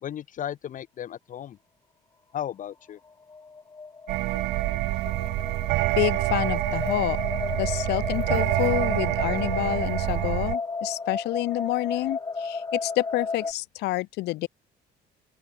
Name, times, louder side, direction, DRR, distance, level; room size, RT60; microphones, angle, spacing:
voice 1, 0.0-1.6 2.3-3.0, left 10 dB, 50° left, 1.0 m, -35 dB
sound 1, 3.3-13.5, left 4 dB, 20° left, 1.7 m, -34 dB
sound 2, 4.1-10.6, right 20 dB, 80° right, 0.4 m, -27 dB
voice 2, 6.0-7.2 7.5-14.5, left 18 dB, 80° left, 0.6 m, -28 dB
open air
cardioid pair, 110°, 17 cm